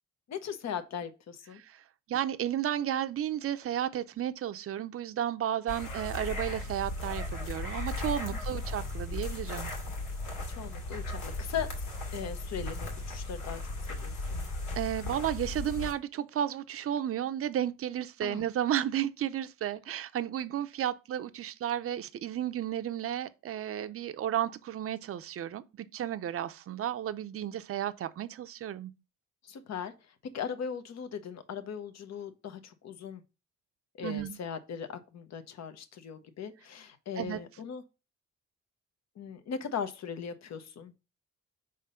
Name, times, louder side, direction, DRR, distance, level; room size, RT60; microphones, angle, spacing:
voice 1, 0.3-1.6 8.3-8.6 10.5-11.7 12.1-13.6 13.9-14.4 18.2-18.5 29.4-29.9 30.3-33.2 34.0-37.8 39.2-40.9, left 7 dB, 60° left, 1.0 m, -39 dB
voice 2, 2.1-9.7 14.8-28.9 34.0-34.4 37.2-37.4, right 11 dB, 50° right, 0.6 m, -33 dB
sound 1, 5.7-15.9, left 2 dB, 80° left, 2.2 m, -36 dB
5.1 x 3.8 x 5.6 m
cardioid pair, 90°, 30 cm